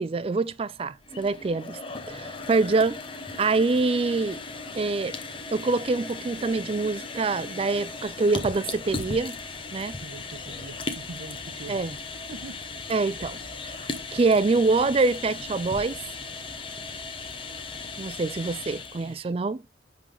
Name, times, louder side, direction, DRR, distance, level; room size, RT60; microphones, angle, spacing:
voice 1, 0.0-1.8 2.1-3.0 3.4-4.4 4.7-5.2 5.5-9.4 9.7-10.0 11.7-11.9 12.9-13.4 13.6-16.0 18.0-19.6, right 3 dB, 30° right, 0.3 m, -25 dB
sound 1, 1.0-19.2, left 3 dB, 25° left, 0.8 m, -37 dB
voice 2, 10.0-11.9 12.3-12.6 19.0-19.5, right 3 dB, 75° right, 0.8 m, -43 dB
10.0 x 3.8 x 3.3 m
head